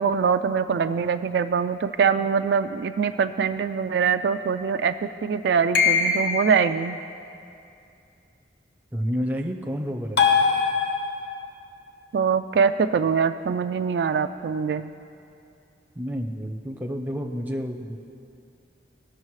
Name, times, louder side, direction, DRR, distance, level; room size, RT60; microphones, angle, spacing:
voice 1, 0.0-4.9 5.2-7.0 12.1-14.9, right 6 dB, 70° right, 9 dB, 0.3 m, -23 dB
sound 1, 5.7-6.7 10.2-11.4, left 5 dB, 70° left, 1.1 m, -21 dB
voice 2, 8.9-10.3 16.0-18.0, equal, 10° right, 1 dB, 0.6 m, -29 dB
18.5 x 6.4 x 3.2 m, 2.6 s
head